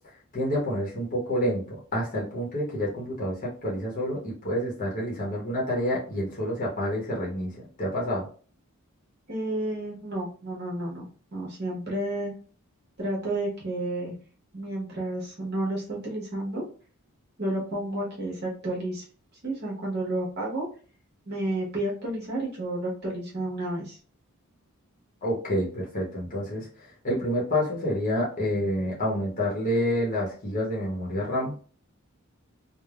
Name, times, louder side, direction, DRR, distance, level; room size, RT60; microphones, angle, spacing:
voice 1, 0.3-8.3 25.2-31.6, equal, 35° left, -4 dB, 0.9 m, -28 dB
voice 2, 9.3-11.0 11.3-12.3 13.0-14.1 14.5-16.6 17.4-19.0 19.4-20.7 21.3-24.0, right 1 dB, 50° right, -4 dB, 1.1 m, -31 dB
3.3 x 2.1 x 2.3 m, 0.40 s
head